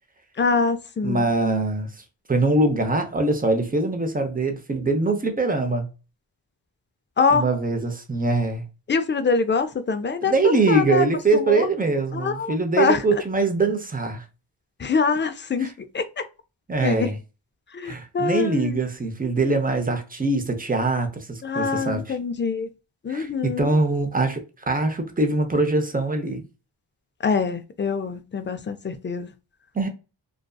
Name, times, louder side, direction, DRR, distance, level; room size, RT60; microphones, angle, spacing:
voice 1, 0.4-1.2 7.2-7.5 8.9-11.1 11.3-11.7 12.1-13.0 14.8-16.2 16.8-17.1 17.7-18.8 21.4-22.7 23.0-23.8 27.2-29.3, left 5 dB, 25° left, 0.4 m, -24 dB
voice 2, 1.0-5.9 7.3-8.6 10.2-14.2 15.6-15.7 16.7-17.2 17.8-22.2 23.1-24.4 24.7-26.4 29.7-29.9, right 3 dB, 20° right, 0.7 m, -23 dB
2.5 x 2.3 x 2.2 m
cardioid pair, 40°, 50 cm